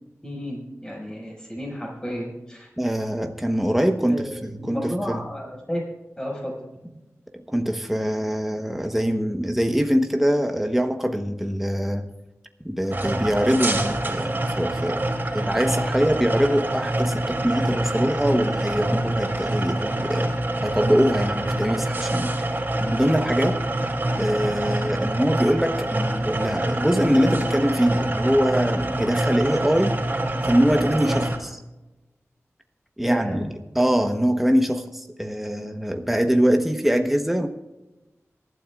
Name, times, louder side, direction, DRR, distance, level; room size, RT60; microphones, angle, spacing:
voice 1, 0.2-2.7 4.0-5.8 6.2-6.6 33.0-33.4, equal, 15° left, -1 dB, 5.6 m, -32 dB
voice 2, 2.8-5.2 7.5-12.1 12.6-15.0 15.3-20.3 20.6-22.3 22.8-23.6 24.2-30.0 30.4-31.6 33.0-33.5 33.7-37.5, equal, 5° right, 5 dB, 1.1 m, -23 dB
sound 1, 12.9-31.4, right 1 dB, 40° right, 2.9 m, -26 dB
26.5 x 12.5 x 2.4 m, 1.0 s
wide cardioid pair, 80°, 5 cm